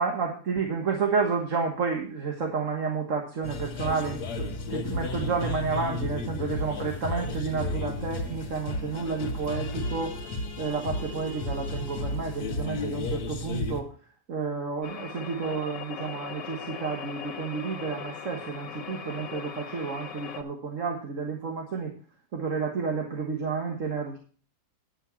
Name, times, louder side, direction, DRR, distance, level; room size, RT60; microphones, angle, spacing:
voice 1, 0.0-10.2 10.6-13.9 14.3-21.9 22.3-24.2, right 5 dB, 50° right, 1 dB, 1.7 m, -30 dB
sound 1, 3.4-13.8, left 2 dB, 70° left, 1.8 m, -33 dB
sound 2, 14.8-20.4, left 7 dB, 85° left, 1.6 m, -40 dB
10.0 x 6.6 x 5.7 m, 0.41 s
omnidirectional pair, 1.8 m